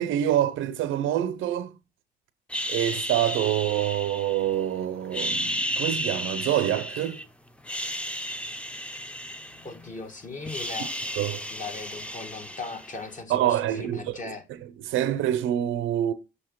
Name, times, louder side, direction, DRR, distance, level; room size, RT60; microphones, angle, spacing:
voice 1, 0.0-1.8 2.7-7.2 11.2-11.4 13.3-14.2 14.9-16.1, right 11 dB, 85° right, 0.6 m, -26 dB
sound 1, 2.5-4.7 5.1-7.2 7.6-10.0 10.2-13.1, equal, 5° left, 0.6 m, -33 dB
voice 2, 9.6-10.9 11.5-14.5, left 4 dB, 40° left, 1.5 m, -38 dB
6.4 x 2.8 x 5.2 m
cardioid pair, 90°, 20 cm